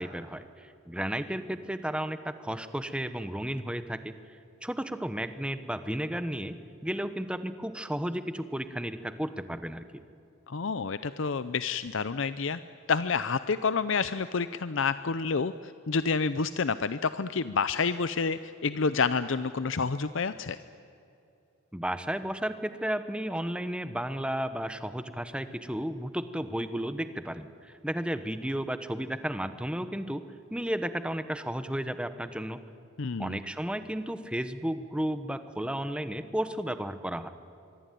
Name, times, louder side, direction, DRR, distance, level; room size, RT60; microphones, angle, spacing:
voice 1, 0.0-4.1 4.6-6.6 6.8-10.0 21.7-30.2 30.5-32.6 33.2-37.3, right 1 dB, 5° right, 11 dB, 1.0 m, -33 dB
voice 2, 10.5-12.6 12.9-20.6 33.0-33.4, left 5 dB, 65° left, 13 dB, 0.6 m, -29 dB
25.0 x 23.0 x 9.2 m, 2.7 s
head